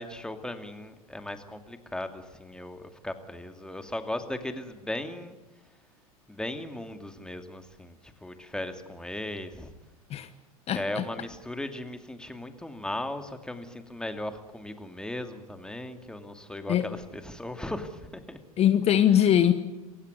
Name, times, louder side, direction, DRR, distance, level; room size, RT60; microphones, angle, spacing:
voice 1, 0.0-5.4 6.3-9.7 10.7-18.4, left 1 dB, 5° left, 8 dB, 2.5 m, -37 dB
voice 2, 10.7-11.0 16.7-16.9 18.6-19.5, left 10 dB, 35° left, 11 dB, 1.2 m, -21 dB
27.5 x 15.5 x 9.8 m, 1.1 s
figure-of-eight pair, 85°, 19 cm